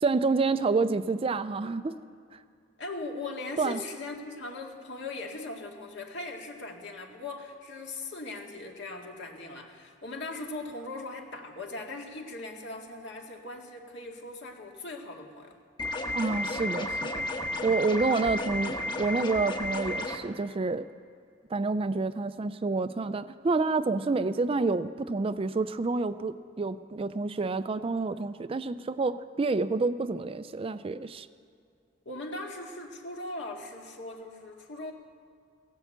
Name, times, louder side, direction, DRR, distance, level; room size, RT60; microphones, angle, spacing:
voice 1, 0.0-2.0 3.6-3.8 16.1-17.2 17.6-20.9 21.5-31.3, right 3 dB, 30° right, 12 dB, 0.4 m, -28 dB
voice 2, 2.8-15.6 32.1-34.9, left 2 dB, 65° left, 1 dB, 2.0 m, -39 dB
sound 1, 15.8-20.2, left 1 dB, 25° left, 1.1 m, -32 dB
17.0 x 10.0 x 8.0 m, 2.3 s
head